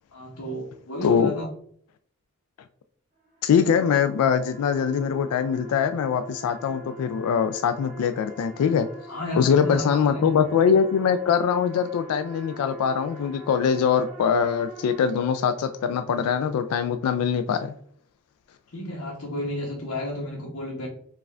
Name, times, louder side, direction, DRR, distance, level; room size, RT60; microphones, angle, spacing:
voice 1, 0.1-1.5 9.1-10.6 18.7-20.9, left 1 dB, 75° left, -4 dB, 1.0 m, -32 dB
voice 2, 1.0-1.3 3.4-8.9 9.4-17.7, left 7 dB, 90° left, 11 dB, 0.3 m, -22 dB
sound 1, 3.2-15.9, right 2 dB, 35° right, 1.2 m, -45 dB
4.7 x 2.4 x 3.2 m, 0.62 s
head